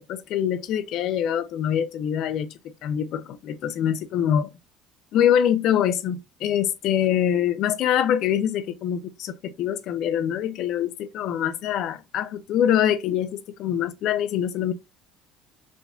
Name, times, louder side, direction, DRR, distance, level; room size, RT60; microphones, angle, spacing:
voice 1, 0.0-4.5 5.1-14.7, left 9 dB, 60° left, 0.6 m, -24 dB
5.0 x 2.5 x 2.3 m
supercardioid pair, 100°, 0 cm